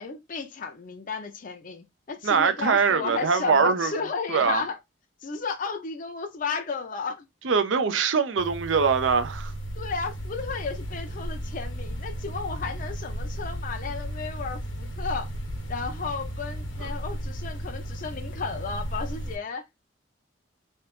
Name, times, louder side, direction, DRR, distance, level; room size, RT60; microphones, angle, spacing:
voice 1, 0.0-4.8 5.2-7.3 9.8-15.3 15.7-19.6, left 4 dB, 45° left, 0.6 m, -33 dB
voice 2, 2.2-3.9 4.3-4.6 7.4-9.5 16.8-16.9, right 5 dB, 75° right, 0.5 m, -23 dB
sound 1, 8.4-19.4, right 1 dB, 75° left, 1.1 m, -35 dB
3.2 x 2.8 x 3.0 m
head